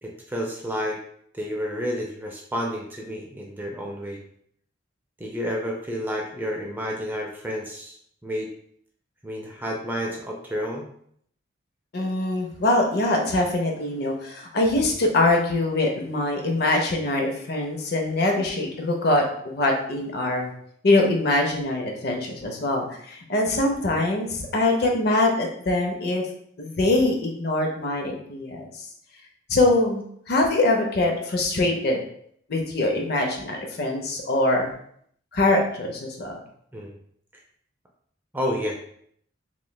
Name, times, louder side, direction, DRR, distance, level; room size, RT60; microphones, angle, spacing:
voice 1, 0.0-1.0 1.3-4.2 5.2-8.0 8.2-8.5 9.2-10.9 36.7-37.0 38.3-38.8, equal, 10° right, 0 dB, 0.3 m, -30 dB
voice 2, 11.9-19.2 19.5-20.5 20.8-26.3 26.6-28.8 29.5-32.0 32.5-34.7 35.3-36.4, left 2 dB, 55° left, 2 dB, 0.6 m, -23 dB
3.1 x 3.0 x 2.2 m, 0.66 s
head